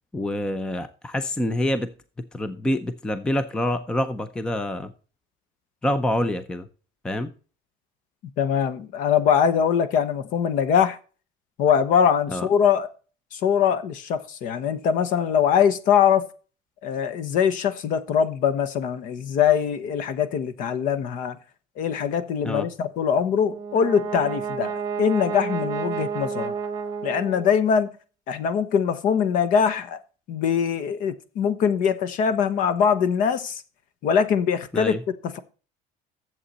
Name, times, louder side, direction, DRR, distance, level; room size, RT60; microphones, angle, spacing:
voice 1, 0.1-1.9 2.3-4.9 5.8-6.7 7.0-7.3 12.3-12.5 22.4-22.7 34.7-35.0, left 1 dB, 5° left, 0.5 m, -26 dB
voice 2, 8.4-11.0 11.6-12.9 13.3-16.2 16.8-21.4 21.8-26.5 27.0-27.9 28.3-30.0 30.3-33.6 34.0-35.4, left 7 dB, 50° left, 1.0 m, -22 dB
Brass instrument, 23.4-27.8, right 6 dB, 20° right, 1.1 m, -31 dB
11.0 x 7.6 x 4.2 m
cardioid pair, 175°, 18 cm